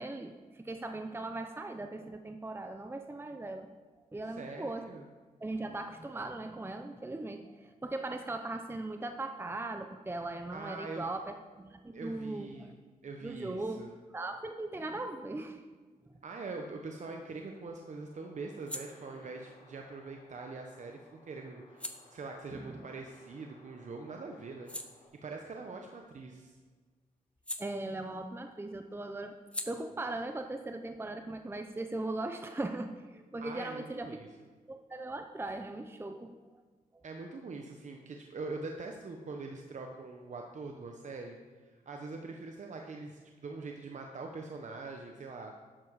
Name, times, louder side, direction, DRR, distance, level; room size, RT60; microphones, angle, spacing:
voice 1, 0.0-3.7 4.1-4.8 5.4-12.7 13.2-13.8 14.1-15.6 22.5-22.8 27.6-29.4 29.7-34.2 34.7-36.4, right 2 dB, 15° right, 6 dB, 0.7 m, -39 dB
voice 2, 4.4-5.1 10.5-11.1 11.9-12.7 13.0-13.9 16.2-24.7 25.2-26.6 33.4-34.3 37.0-41.4 41.6-45.6, right 3 dB, 55° right, 2 dB, 1.0 m, -43 dB
sound 1, 16.9-23.8 24.2-28.4 28.7-32.1, left 1 dB, 10° left, 1.0 m, -49 dB
sound 2, 18.1-25.1, left 2 dB, 80° left, 3.5 m, -60 dB
11.5 x 7.1 x 4.8 m, 1.4 s
cardioid pair, 70°, 15 cm